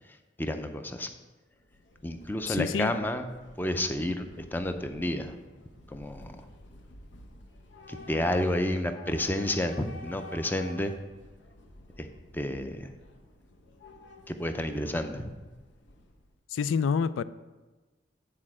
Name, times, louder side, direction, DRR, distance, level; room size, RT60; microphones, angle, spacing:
voice 1, 0.1-1.1 2.0-3.2 3.6-5.4 5.9-6.5 7.9-10.9 12.0-12.1 12.3-12.9 14.3-15.3, left 1 dB, 10° left, 7 dB, 0.5 m, -30 dB
Train / Subway metro underground, 1.5-16.4, left 2 dB, 70° left, 0.8 m, -51 dB
voice 2, 2.5-2.9 16.5-17.2, left 6 dB, 90° left, 16 dB, 0.3 m, -27 dB
8.7 x 4.3 x 6.0 m, 1.2 s
head